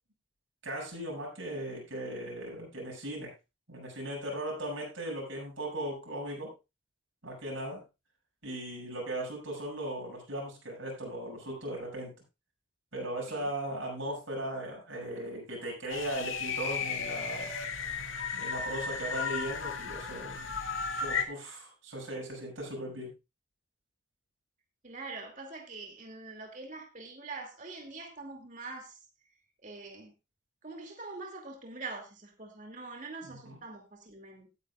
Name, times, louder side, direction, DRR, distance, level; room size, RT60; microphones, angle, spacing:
voice 1, 0.6-3.3 3.7-6.5 7.2-7.8 8.4-12.1 12.9-17.5 18.3-20.5 20.9-23.1 33.2-33.6, right 1 dB, 75° right, -2 dB, 6.5 m, -38 dB
sound 1, 15.9-21.2, left 5 dB, 85° left, 1.8 m, -34 dB
voice 2, 24.8-29.0 29.6-30.1 30.6-34.5, right 3 dB, 40° right, 3 dB, 2.5 m, -44 dB
17.0 x 9.2 x 2.4 m, 0.26 s
head